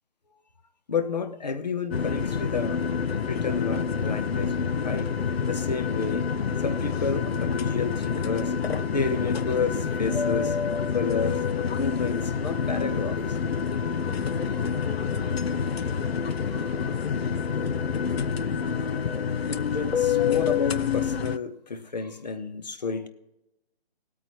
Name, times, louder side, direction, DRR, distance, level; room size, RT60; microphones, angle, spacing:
voice 1, 0.9-2.8 3.2-5.1 5.5-6.3 6.6-8.5 8.9-10.6 10.9-11.4 11.7-13.4 14.5-14.7 16.4-17.0 19.5-23.1, left 5 dB, 40° left, 11 dB, 1.0 m, -31 dB
sound 1, 1.9-21.4, left 6 dB, 70° left, 0.7 m, -27 dB
20.0 x 8.5 x 3.0 m, 0.89 s
hypercardioid pair, 175°, 32 cm